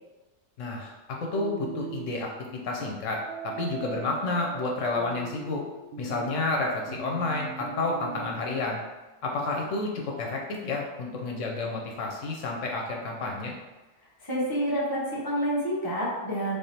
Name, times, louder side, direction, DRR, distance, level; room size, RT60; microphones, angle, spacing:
voice 1, 0.6-5.6 6.0-8.8 9.2-13.5, left 3 dB, 80° left, 0 dB, 1.0 m, -30 dB
sound 1, 1.4-2.2 3.3-8.3, right 8 dB, 65° right, 0.7 m, -40 dB
voice 2, 14.2-16.6, equal, 20° left, -7 dB, 1.2 m, -28 dB
3.5 x 3.4 x 4.1 m, 1.1 s
omnidirectional pair, 1.3 m